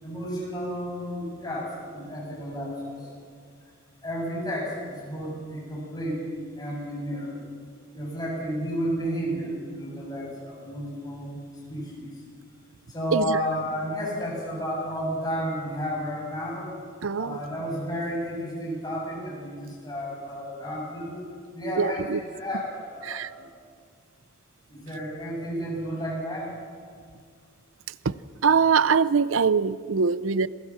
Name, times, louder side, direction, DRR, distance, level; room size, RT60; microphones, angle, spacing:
voice 1, 0.0-3.1 4.0-7.4 7.9-11.4 11.7-12.1 12.9-16.7 17.2-21.2 21.5-23.5 24.7-26.5, equal, 20° left, 7.4 m, -32 dB
voice 2, 17.0-17.4 21.8-22.2 23.0-23.3 28.0-28.2 28.4-30.5, right 5 dB, 85° right, 0.6 m, -23 dB
27.5 x 17.0 x 7.4 m
head